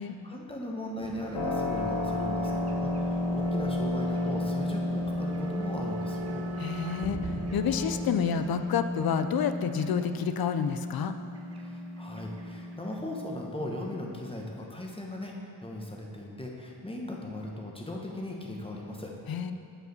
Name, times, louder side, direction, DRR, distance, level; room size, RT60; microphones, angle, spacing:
voice 1, 0.0-6.4 11.6-15.3 15.6-19.1, left 1 dB, 15° left, -1 dB, 1.0 m, -38 dB
sound 1, 1.0-10.5 11.3-12.5 12.7-12.9 13.9-14.0, right 4 dB, 35° right, 0.6 m, -42 dB
Keyboard (musical), 1.3-13.9, left 2 dB, 80° left, 1.3 m, -33 dB
voice 2, 6.6-11.1 19.3-19.5, left 7 dB, 60° left, 10 dB, 0.5 m, -29 dB
6.7 x 4.8 x 7.0 m, 2.6 s
wide cardioid pair, 95°, 42 cm